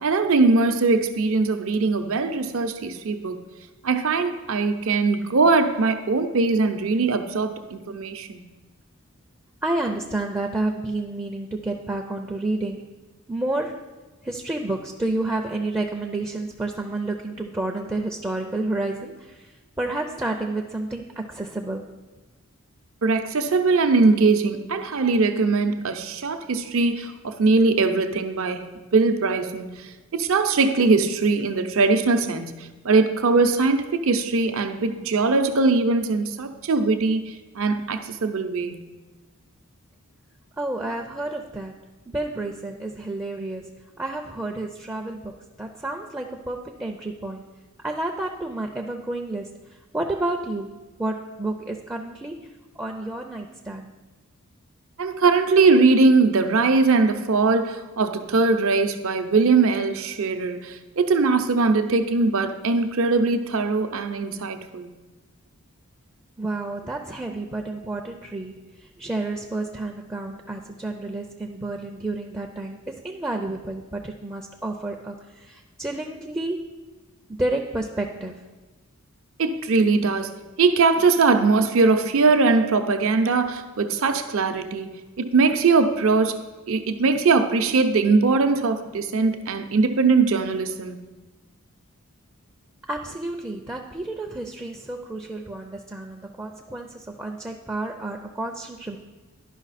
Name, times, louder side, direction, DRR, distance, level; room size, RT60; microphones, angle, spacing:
voice 1, 0.0-3.4 3.8-8.4 23.0-38.8 55.0-64.9 79.4-86.4 86.7-91.0, right 4 dB, 60° right, 8 dB, 0.6 m, -21 dB
voice 2, 9.6-12.9 13.3-13.8 14.2-22.0 40.6-47.5 47.8-53.9 66.4-76.7 77.3-78.5 92.9-99.0, right 2 dB, 10° right, 3 dB, 0.4 m, -30 dB
11.0 x 5.6 x 4.1 m, 1.2 s
head